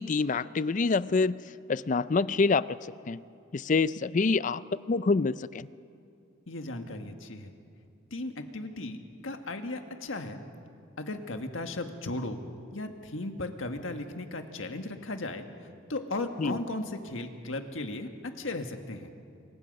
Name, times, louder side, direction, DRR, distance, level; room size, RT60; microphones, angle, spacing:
voice 1, 0.0-2.8 3.1-3.2 3.5-5.7 16.4-16.6, left 4 dB, 40° left, 17 dB, 0.4 m, -27 dB
voice 2, 6.5-7.5 8.1-10.4 11.0-12.4 12.7-15.5 15.9-19.1, left 2 dB, 90° left, 6 dB, 1.7 m, -36 dB
26.5 x 23.5 x 5.4 m, 2.5 s
head